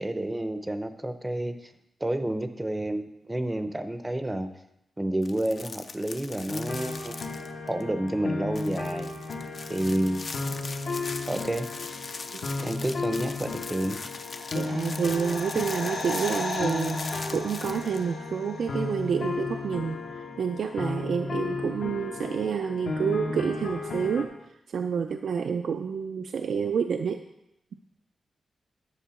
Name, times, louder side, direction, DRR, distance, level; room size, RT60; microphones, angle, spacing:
voice 1, 0.0-1.7 2.0-4.5 5.0-7.2 7.7-9.1 9.7-10.2 11.3-11.7 12.6-14.0, right 1 dB, 15° right, 9 dB, 0.6 m, -30 dB
sound 1, 5.2-7.8 8.1-8.2 8.5-18.0, left 4 dB, 45° left, 0.6 m, -41 dB
sound 2, 6.5-24.2, left 3 dB, 70° left, 1.3 m, -34 dB
sound 3, 13.8-18.7 18.9-19.0, left 3 dB, 90° left, 1.7 m, -36 dB
voice 2, 14.5-27.2, right 6 dB, 70° right, 6 dB, 0.4 m, -29 dB
10.5 x 4.4 x 7.0 m, 0.83 s
wide cardioid pair, 125°, 0 cm